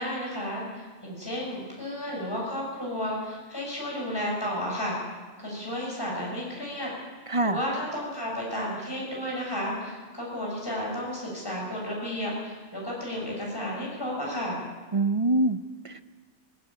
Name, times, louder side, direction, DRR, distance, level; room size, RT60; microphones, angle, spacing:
voice 1, 0.0-5.0 5.4-6.9 7.4-14.6, equal, 20° left, -3 dB, 7.0 m, -32 dB
voice 2, 7.3-7.6 14.9-16.0, right 2 dB, 30° right, 10 dB, 0.7 m, -25 dB
19.5 x 18.0 x 9.0 m, 1.4 s
omnidirectional pair, 1.2 m